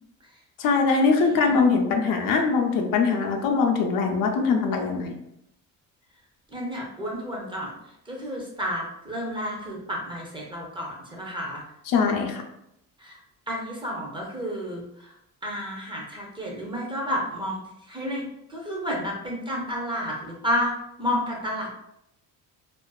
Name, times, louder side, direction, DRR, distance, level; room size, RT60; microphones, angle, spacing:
voice 1, 0.6-5.1 11.9-12.4, left 4 dB, 75° left, 2 dB, 0.5 m, -22 dB
voice 2, 6.5-7.7 8.1-11.6 13.0-13.2 13.5-15.1 15.4-17.6 17.9-18.2 18.5-20.7 21.0-21.7, equal, 15° right, -2 dB, 0.6 m, -31 dB
2.5 x 2.2 x 2.3 m, 0.79 s
cardioid pair, 115°, 34 cm